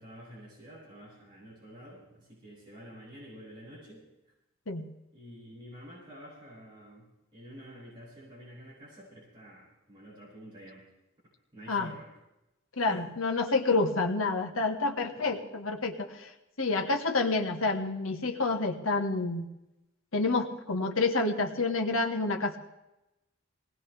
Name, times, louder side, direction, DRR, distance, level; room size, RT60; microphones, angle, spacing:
voice 1, 0.0-4.1 5.1-10.8 11.5-12.1 12.8-13.1, equal, 25° right, -8 dB, 7.4 m, -49 dB
voice 2, 12.8-16.3 16.6-19.5 20.1-22.6, left 3 dB, 85° left, 3 dB, 1.7 m, -28 dB
21.5 x 19.0 x 3.5 m, 0.93 s
head